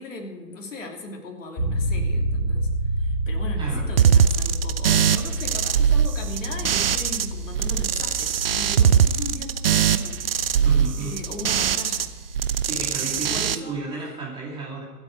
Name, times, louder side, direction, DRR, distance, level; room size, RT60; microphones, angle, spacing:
voice 1, 0.0-2.7 3.0-10.2 11.0-12.1 13.0-13.8, left 2 dB, 50° left, 2 dB, 3.0 m, -38 dB
sound 1, 1.6-13.5, right 1 dB, 30° left, 5.6 m, -30 dB
sound 2, 4.0-7.3 7.5-12.1 12.3-13.6, right 8 dB, 40° right, 0.6 m, -21 dB
voice 2, 10.6-11.2 12.7-14.8, right 3 dB, 10° right, -5 dB, 2.6 m, -33 dB
24.5 x 8.2 x 4.6 m, 1.4 s
figure-of-eight pair, 120°, 48 cm